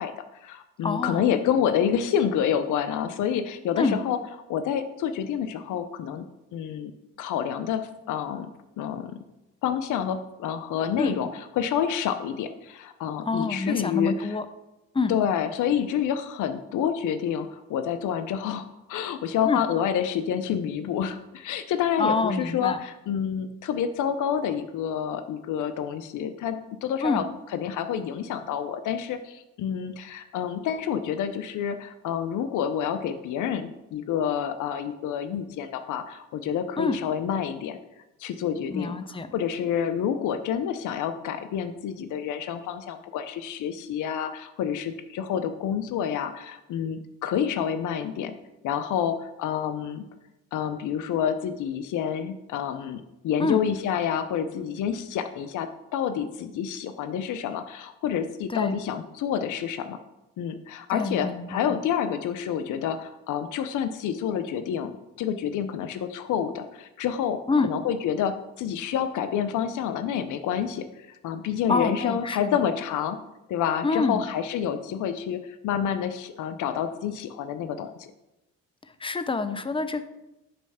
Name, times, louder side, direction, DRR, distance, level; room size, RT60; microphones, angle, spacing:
voice 1, 0.0-4.2 4.5-6.3 6.5-6.9 7.2-8.5 8.8-9.2 9.6-14.4 15.1-27.2 27.5-37.8 38.2-48.3 48.6-50.0 50.5-60.0 60.4-73.2 73.5-78.1, left 8 dB, 65° left, 9 dB, 0.5 m, -28 dB
voice 2, 0.8-1.3 3.8-4.0 11.0-11.2 13.3-14.5 14.9-15.1 19.4-19.6 22.0-22.8 27.0-27.2 36.8-37.0 38.7-39.4 53.4-53.6 58.5-58.8 60.9-61.7 67.5-67.7 71.7-72.6 73.8-74.2 79.0-80.0, left 3 dB, 15° left, 11 dB, 0.5 m, -26 dB
6.9 x 3.2 x 5.5 m, 0.95 s
supercardioid pair, 65°, 34 cm